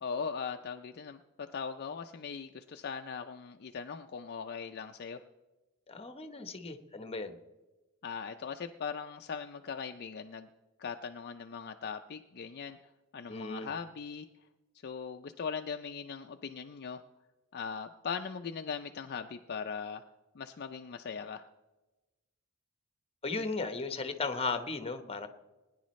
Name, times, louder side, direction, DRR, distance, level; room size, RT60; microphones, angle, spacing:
voice 1, 0.0-5.2 8.0-10.5 10.8-12.8 13.1-14.3 14.8-17.0 17.5-20.0 20.3-21.5, left 6 dB, 50° left, 6 dB, 0.5 m, -40 dB
voice 2, 5.9-7.4 13.3-13.7 23.2-25.3, left 3 dB, 25° left, 8 dB, 0.9 m, -36 dB
21.0 x 10.0 x 3.1 m, 1.1 s
head